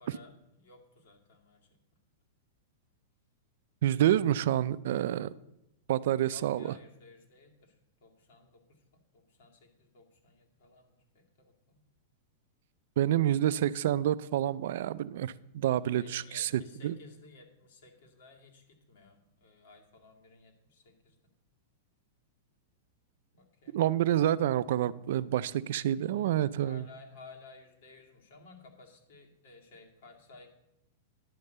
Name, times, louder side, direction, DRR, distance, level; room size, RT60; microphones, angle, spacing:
voice 1, 0.0-1.7 6.2-11.8 16.0-21.2 23.3-23.9 26.1-30.5, left 3 dB, 55° left, 2 dB, 2.3 m, -56 dB
voice 2, 3.8-5.3 5.9-6.7 13.0-17.0 23.7-26.9, right 12 dB, 55° right, 17 dB, 0.4 m, -28 dB
11.0 x 5.4 x 7.8 m, 0.85 s
supercardioid pair, 170°, 0 cm